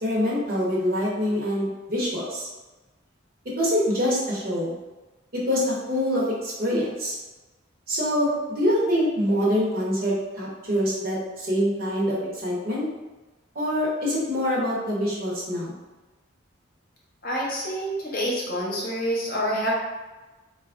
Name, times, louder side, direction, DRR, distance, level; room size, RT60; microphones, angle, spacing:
voice 1, 0.0-2.5 3.6-4.7 5.3-7.1 7.9-12.2 12.4-12.9 13.5-15.7, equal, 45° right, -5 dB, 0.9 m, -25 dB
voice 2, 17.2-19.7, equal, 45° left, -4 dB, 0.8 m, -27 dB
4.0 x 2.3 x 2.4 m, 1.2 s
head